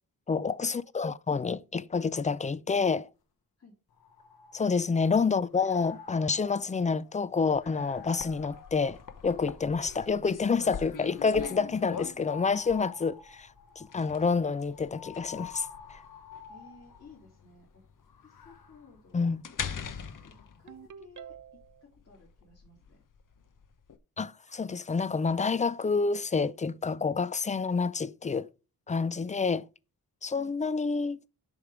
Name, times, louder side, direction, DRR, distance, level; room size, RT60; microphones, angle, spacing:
voice 1, 0.3-3.1 4.5-13.5 13.8-16.0 19.1-19.4 24.2-28.5 28.9-29.7 30.2-31.2, left 5 dB, 20° left, 0.3 m, -28 dB
sound 1, 3.9-5.1 5.5-9.9 10.6-17.3 18.0-20.6, left 8 dB, 80° left, 1.0 m, -50 dB
sound 2, 7.5-24.0, left 7 dB, 55° left, 0.8 m, -43 dB
voice 2, 16.5-17.8 18.2-19.3 20.2-23.0 30.3-30.5, left 4 dB, 40° left, 3.0 m, -56 dB
Ringtone, 20.7-21.8, right 8 dB, 55° right, 0.7 m, -47 dB
7.1 x 5.2 x 4.7 m
wide cardioid pair, 115°, 37 cm